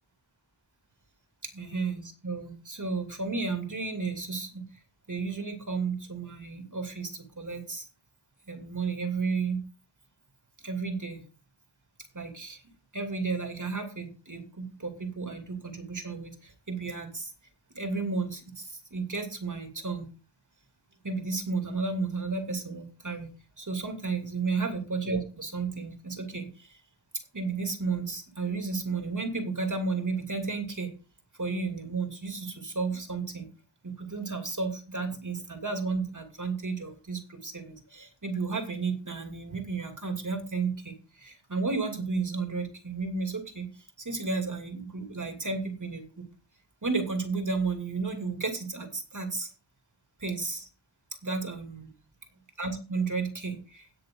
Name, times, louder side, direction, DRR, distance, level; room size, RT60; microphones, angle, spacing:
voice 1, 1.5-4.8 5.1-7.9 8.5-9.6 10.6-11.2 12.1-12.6 12.9-17.3 17.7-20.1 21.0-23.3 23.6-26.8 27.3-30.9 31.4-33.5 33.8-46.3 46.8-49.5 50.2-50.7 51.2-51.9 52.6-53.9, right 4 dB, 40° right, 5 dB, 2.8 m, -33 dB
17.5 x 6.4 x 3.8 m, 0.35 s
wide cardioid pair, 65°, 46 cm